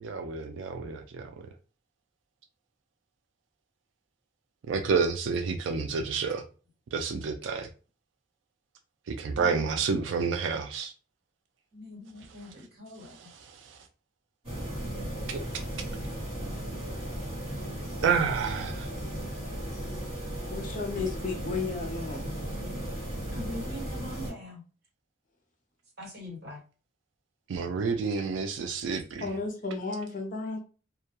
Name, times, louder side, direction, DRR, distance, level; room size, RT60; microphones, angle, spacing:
voice 1, 0.0-1.3 4.7-6.4 6.9-7.7 9.1-10.9 13.1-13.8 15.3-15.4 18.0-18.9 21.0-21.1 27.5-29.3, right 5 dB, 70° right, 0.3 m, -29 dB
voice 2, 9.3-9.8 11.7-13.3 23.3-24.6 26.0-26.6, left 1 dB, 55° right, 1.2 m, -42 dB
sound 1, 14.4-24.3, equal, 30° right, 1.4 m, -36 dB
voice 3, 20.5-22.2 29.2-30.6, left 4 dB, 45° left, 0.6 m, -33 dB
2.2 x 2.2 x 2.8 m
head